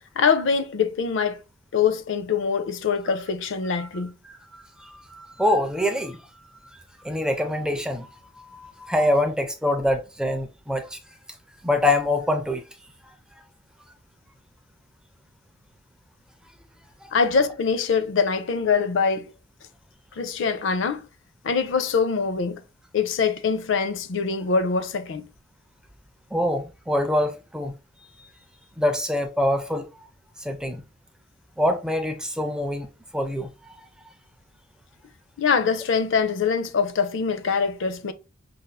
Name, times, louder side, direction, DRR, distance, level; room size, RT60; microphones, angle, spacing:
voice 1, 0.2-1.4 1.7-4.1 17.1-19.3 20.2-21.0 21.4-22.6 22.9-25.2 35.4-38.1, left 5 dB, 65° left, 0.4 m, -23 dB
voice 2, 4.2-6.3 6.7-8.1 8.4-11.0 11.6-12.6 17.0-17.1 26.3-27.7 28.8-29.9 30.4-30.8 31.6-33.5, left 1 dB, 5° right, 0.4 m, -25 dB
5.3 x 2.6 x 2.2 m
head